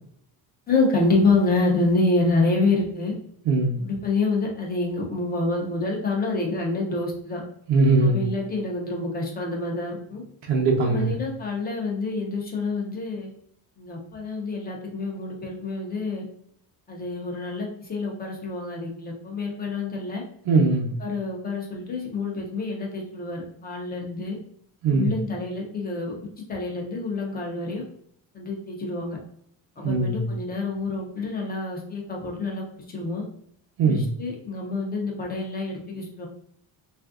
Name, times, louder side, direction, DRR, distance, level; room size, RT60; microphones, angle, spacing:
voice 1, 0.7-3.1 3.8-7.4 8.0-10.2 10.8-13.3 13.8-16.2 16.9-20.2 21.0-24.4 24.9-26.2 26.5-27.8 28.3-29.2 29.8-33.2 33.8-36.3, left 3 dB, 20° left, -1 dB, 0.5 m, -27 dB
voice 2, 3.4-3.8 7.7-8.3 10.5-11.1 20.5-20.9 24.8-25.1 29.8-30.3 33.8-34.1, right 3 dB, 85° right, -1 dB, 0.8 m, -20 dB
3.3 x 2.5 x 2.4 m, 0.67 s
cardioid pair, 180°, 43 cm